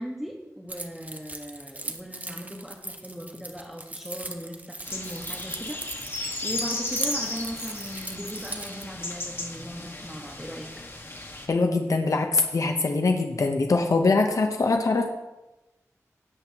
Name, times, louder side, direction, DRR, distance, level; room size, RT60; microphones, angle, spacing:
voice 1, 0.0-6.0 6.4-10.7, equal, 5° right, -1 dB, 1.4 m, -38 dB
Keys jangling, 0.7-8.8, right 2 dB, 25° right, 1.0 m, -38 dB
sound 1, 4.8-11.5, left 2 dB, 40° left, 1.6 m, -35 dB
voice 2, 11.5-15.1, left 3 dB, 65° left, 4 dB, 0.9 m, -23 dB
17.5 x 8.0 x 3.0 m, 1.0 s
wide cardioid pair, 60°, 6 cm